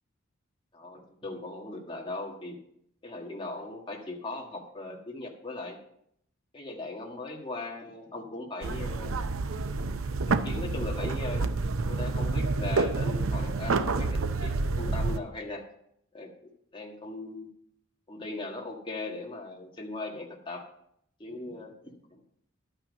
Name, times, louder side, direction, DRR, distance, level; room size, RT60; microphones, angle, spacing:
voice 1, 0.7-2.6 3.0-5.8 6.5-9.2 9.9-10.0 10.3-11.5 11.9-15.6 16.1-16.3 16.7-17.5 18.1-20.6 21.2-22.2, left 2 dB, 25° left, 0 dB, 1.7 m, -39 dB
sound 1, 8.6-15.2, right 3 dB, 75° right, 0.6 m, -28 dB
11.5 x 8.9 x 5.3 m, 0.72 s
head